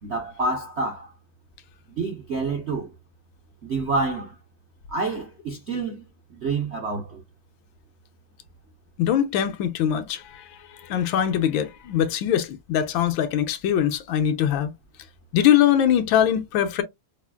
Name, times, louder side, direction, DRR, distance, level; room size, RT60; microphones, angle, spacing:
voice 1, 0.0-1.1 1.9-2.9 3.6-4.4 4.9-6.0 6.3-7.2, right 3 dB, 65° right, 0.6 m, -28 dB
voice 2, 9.0-14.7 15.3-16.8, left 10 dB, 80° left, 1.3 m, -22 dB
4.9 x 2.4 x 2.3 m
omnidirectional pair, 2.2 m